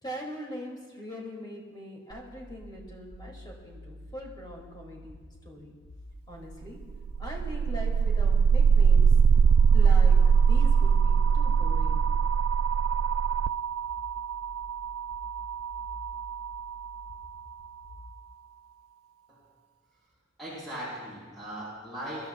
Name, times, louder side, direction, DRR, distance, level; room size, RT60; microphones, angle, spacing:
voice 1, 0.0-5.2 5.4-5.8 6.3-6.8 7.2-9.1 9.7-12.1, equal, 20° left, -1 dB, 2.8 m, -42 dB
sound 1, 2.1-18.1, equal, 55° left, 2.2 m, -48 dB
sound 2, 6.9-16.9, right 6 dB, 90° right, 0.3 m, -22 dB
voice 2, 20.4-22.3, right 1 dB, ahead, -10 dB, 4.9 m, -38 dB
25.5 x 13.0 x 2.5 m, 1.5 s
head